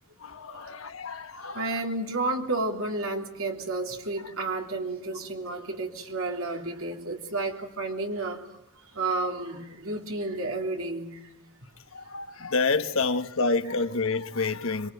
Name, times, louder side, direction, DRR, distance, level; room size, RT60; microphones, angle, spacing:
voice 1, 0.2-1.7 11.9-14.9, left 3 dB, 65° left, 1.4 m, -28 dB
voice 2, 1.5-8.4 8.9-11.1, right 2 dB, 70° right, 3.3 m, -31 dB
26.0 x 23.5 x 9.3 m
head